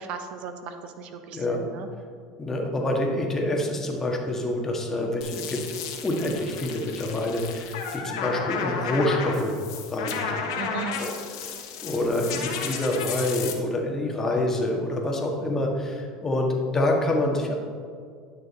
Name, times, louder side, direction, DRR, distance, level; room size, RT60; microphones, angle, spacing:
voice 1, 0.0-1.9 10.6-11.0, right 6 dB, 60° right, 7 dB, 0.9 m, -36 dB
voice 2, 1.3-1.6 2.4-5.6 6.0-9.6 9.9-10.6 11.0-11.1 11.8-17.5, left 1 dB, 20° left, 0 dB, 1.7 m, -27 dB
sound 1, 5.2-13.5, left 6 dB, 85° left, 1.2 m, -33 dB
11.0 x 6.4 x 4.3 m, 2.1 s
supercardioid pair, 105°, 2 cm